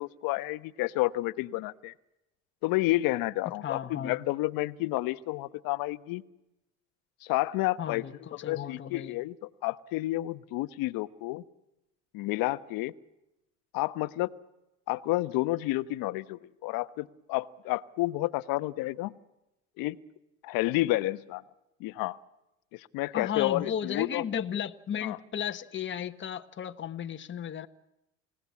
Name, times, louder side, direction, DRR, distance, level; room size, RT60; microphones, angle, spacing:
voice 1, 0.0-1.9 2.6-6.2 7.2-8.0 8.4-9.3 9.6-11.4 12.1-12.9 13.7-14.3 14.9-19.1 19.8-20.0 20.4-21.4 21.8-22.2 22.7-24.2 25.0-25.2, left 18 dB, 75° left, 15 dB, 1.1 m, -30 dB
voice 2, 3.6-4.1 7.8-9.1 23.1-27.7, left 8 dB, 35° left, 7 dB, 1.4 m, -34 dB
30.0 x 17.5 x 8.5 m, 0.92 s
supercardioid pair, 100°, 35 cm